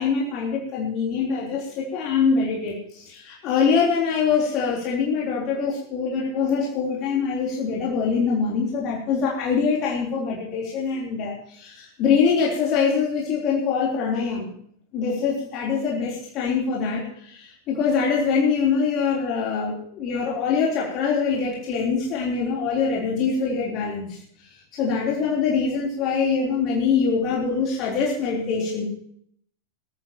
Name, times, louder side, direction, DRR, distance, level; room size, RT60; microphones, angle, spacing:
voice 1, 0.0-14.5 14.9-28.8, left 5 dB, 40° left, -3 dB, 3.5 m, -24 dB
21.0 x 13.5 x 3.0 m, 0.64 s
figure-of-eight pair, 90°, 0 cm